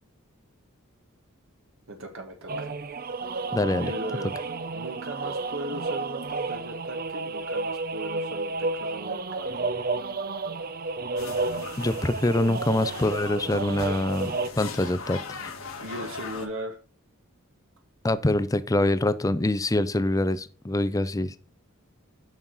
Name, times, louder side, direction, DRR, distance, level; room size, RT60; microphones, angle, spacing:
voice 1, 1.9-2.7 3.8-4.3 4.7-9.7 15.8-16.8, right 1 dB, 65° right, 3 dB, 1.5 m, -38 dB
sound 1, 2.5-14.5, right 3 dB, 45° right, 0.6 m, -31 dB
voice 2, 3.5-3.9 11.8-14.3 14.6-15.5 18.0-21.3, left 2 dB, 15° left, 14 dB, 0.5 m, -25 dB
sound 2, 11.2-16.5, left 4 dB, 70° left, 1.7 m, -39 dB
7.3 x 6.5 x 4.0 m, 0.38 s
head